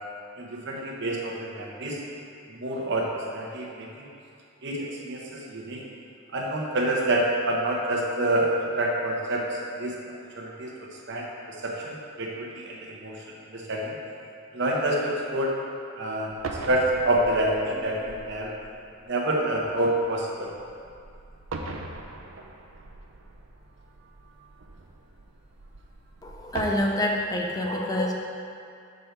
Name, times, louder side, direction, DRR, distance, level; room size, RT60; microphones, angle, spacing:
voice 1, 0.4-2.0 2.5-4.1 4.6-5.8 6.3-10.0 10.3-10.7 11.1-11.3 11.6-13.2 13.5-14.0 14.5-15.5 16.0-16.3 16.7-18.5 19.1-20.5, right 1 dB, 60° right, -2 dB, 1.0 m, -27 dB
sound 1, 16.3-26.7, right 3 dB, 85° right, 0.6 m, -41 dB
voice 2, 26.2-28.1, left 1 dB, 20° left, 0 dB, 0.5 m, -27 dB
6.7 x 5.3 x 4.5 m, 2.4 s
head